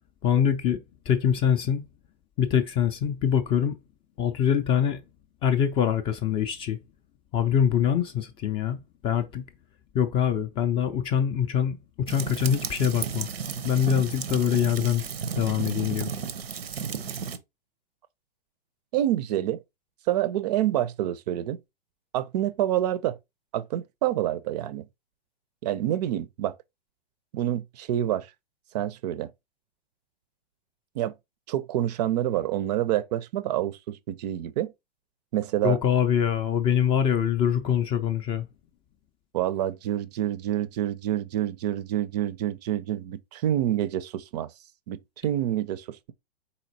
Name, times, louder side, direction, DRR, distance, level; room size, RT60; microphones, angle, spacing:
voice 1, 0.2-1.8 2.4-3.8 4.2-5.0 5.4-6.8 7.3-9.4 9.9-13.3 13.6-15.0 15.4-16.1 35.6-38.5, left 8 dB, 20° left, 0.3 m, -24 dB
sound 1, 12.1-17.4, right 6 dB, 85° right, 0.7 m, -33 dB
voice 2, 18.9-19.6 20.1-21.6 22.1-23.2 23.5-24.9 25.6-26.5 27.3-28.3 28.7-29.3 31.0-31.1 31.5-34.7 35.3-35.8 39.3-44.5 44.9-46.1, right 12 dB, 45° right, 0.4 m, -27 dB
4.1 x 4.1 x 2.7 m
hypercardioid pair, 110°, 29 cm